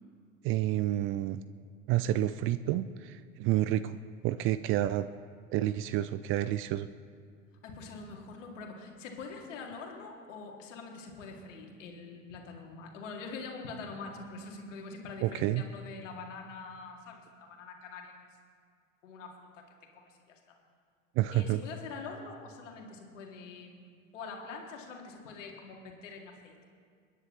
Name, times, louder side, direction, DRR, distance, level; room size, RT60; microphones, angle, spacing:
voice 1, 0.4-1.4 1.9-5.1 5.5-6.9 15.2-15.6 21.2-21.6, right 13 dB, 35° right, 14 dB, 0.4 m, -29 dB
voice 2, 7.6-18.1 19.0-19.6 19.9-20.6 21.3-23.8 24.1-26.6, left 4 dB, 65° left, 1 dB, 2.4 m, -44 dB
29.5 x 10.0 x 3.2 m, 2.1 s
figure-of-eight pair, 70°, 40 cm